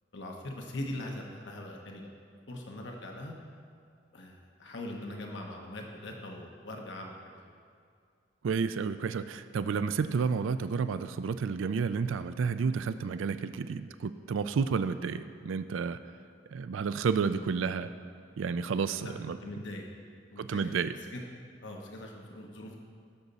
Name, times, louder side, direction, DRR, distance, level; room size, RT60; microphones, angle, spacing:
voice 1, 0.1-2.1 2.5-3.3 4.1-7.5 19.0-19.1 19.4-19.9 20.3-20.7 21.0-21.2 21.6-22.8, left 1 dB, 65° left, 1 dB, 1.0 m, -41 dB
voice 2, 8.4-16.0 16.5-17.9 18.4-19.4 20.4-20.9, right 5 dB, 90° right, 12 dB, 0.4 m, -31 dB
16.5 x 6.7 x 4.1 m, 2.2 s
head